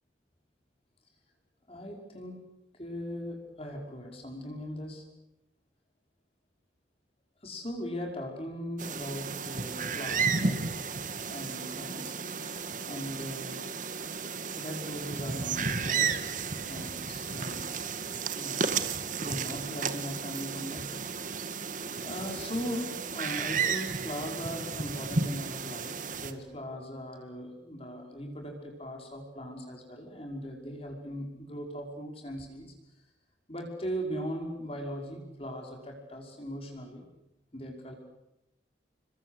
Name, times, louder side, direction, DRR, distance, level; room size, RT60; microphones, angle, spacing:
voice 1, 1.7-2.4 2.7-5.0 7.4-10.7 11.3-12.6 12.9-13.6 14.5-17.9 18.4-18.9 19.2-21.2 22.0-32.7 33.5-37.0 37.5-37.9, equal, 30° left, 2 dB, 5.6 m, -39 dB
sound 1, 8.8-26.3, right 5 dB, 45° right, 2.1 m, -33 dB
29.5 x 23.0 x 8.2 m, 0.90 s
head